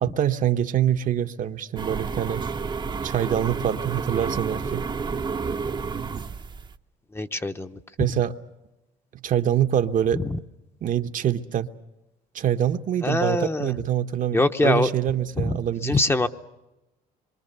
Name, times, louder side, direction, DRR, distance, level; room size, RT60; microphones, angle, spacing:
voice 1, 0.0-2.4 3.0-4.8 8.0-8.3 9.2-10.2 10.8-11.7 12.3-16.0, right 10 dB, 50° right, 1.0 m, -25 dB
sound 1, 1.8-6.8, right 5 dB, 25° right, 0.8 m, -30 dB
voice 2, 7.1-7.8 10.1-10.4 13.0-13.7 14.3-14.9 15.4-16.3, left 2 dB, 15° left, 0.8 m, -24 dB
26.0 x 23.5 x 6.8 m
cardioid pair, 110°, 17 cm